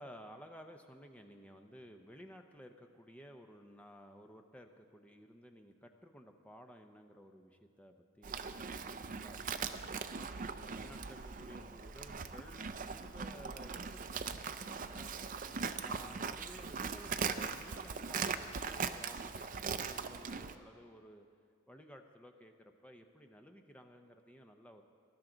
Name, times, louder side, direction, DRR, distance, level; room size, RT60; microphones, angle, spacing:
voice 1, 0.0-8.4 9.1-15.3 15.8-21.3 21.7-24.8, equal, 5° left, 4 dB, 0.6 m, -55 dB
Livestock farm animals working animals, 8.2-20.5, right 5 dB, 35° right, 0.4 m, -40 dB
19.5 x 12.0 x 3.9 m, 2.3 s
head